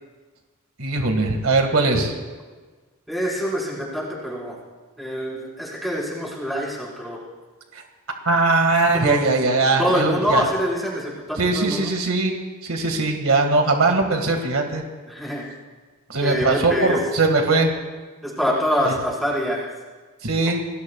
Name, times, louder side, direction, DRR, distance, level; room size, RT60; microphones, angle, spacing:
voice 1, 0.8-2.2 8.3-10.4 11.4-14.8 16.1-17.7 20.2-20.6, right 3 dB, 75° right, 3 dB, 2.0 m, -20 dB
voice 2, 3.1-4.6 5.0-7.2 8.9-9.2 9.8-11.9 15.0-15.5 16.2-17.0 18.2-19.7, equal, ahead, -5 dB, 5.0 m, -25 dB
28.0 x 20.5 x 2.4 m, 1.4 s
head